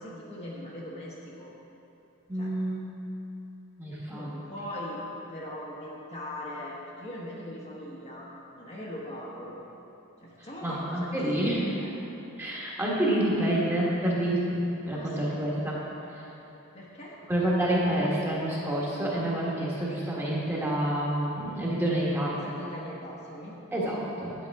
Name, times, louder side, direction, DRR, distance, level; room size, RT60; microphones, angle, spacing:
voice 1, 0.0-1.5 2.3-2.5 4.1-5.0 5.3-9.6 10.2-11.1 11.8-11.9 14.9-15.5 16.7-17.2 22.3-23.6, left 1 dB, 30° left, -5 dB, 1.1 m, -40 dB
voice 2, 2.3-2.9 3.8-4.3 10.4-11.8 12.4-14.6 14.8-15.8 17.3-22.3 23.7-24.3, right 1 dB, 10° right, -6 dB, 1.4 m, -28 dB
9.5 x 8.5 x 3.5 m, 2.9 s
head